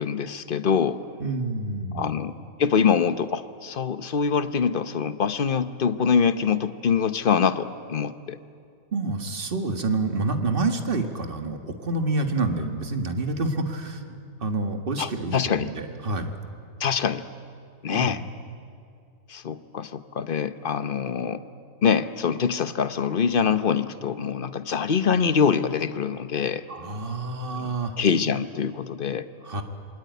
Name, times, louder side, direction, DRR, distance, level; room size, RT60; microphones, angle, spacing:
voice 1, 0.0-1.0 1.9-8.4 15.0-15.7 16.8-17.3 17.8-18.2 19.3-21.4 21.8-26.6 27.6-29.3, left 6 dB, 45° left, 12 dB, 1.0 m, -24 dB
voice 2, 1.2-2.1 8.9-16.3 17.9-18.2 26.7-28.0 29.4-29.6, right 3 dB, 40° right, 5 dB, 1.9 m, -28 dB
27.0 x 23.0 x 9.5 m, 2.4 s
omnidirectional pair, 1.5 m